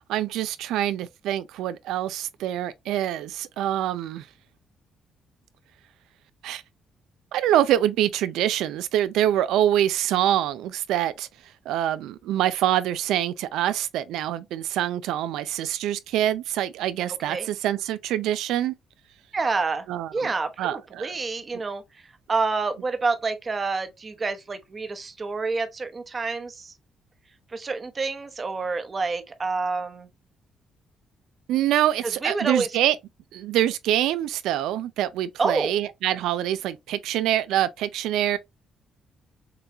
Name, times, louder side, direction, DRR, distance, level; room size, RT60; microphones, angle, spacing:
voice 1, 0.0-4.3 6.4-6.6 7.3-18.7 19.9-20.3 20.6-21.2 31.5-33.0 33.3-38.4, right 12 dB, 90° right, 0.5 m, -25 dB
voice 2, 19.3-19.8 20.1-21.8 22.3-26.7 27.5-30.1 32.2-32.7 35.4-35.7, right 4 dB, 35° right, 0.9 m, -28 dB
6.7 x 2.3 x 2.8 m
cardioid pair, 90°, 0 cm